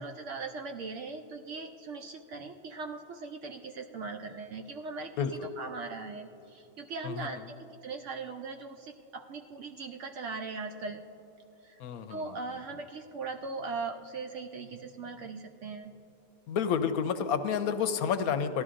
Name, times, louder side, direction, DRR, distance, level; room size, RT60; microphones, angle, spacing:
voice 1, 0.0-5.1 5.6-7.6 7.8-11.0 11.6-11.8 12.1-15.9, right 4 dB, 65° right, 4 dB, 0.7 m, -39 dB
voice 2, 5.2-5.5 7.0-7.3 11.8-12.6 16.5-18.6, left 7 dB, 75° left, 10 dB, 1.0 m, -30 dB
17.5 x 12.5 x 2.5 m, 3.0 s
omnidirectional pair, 1.6 m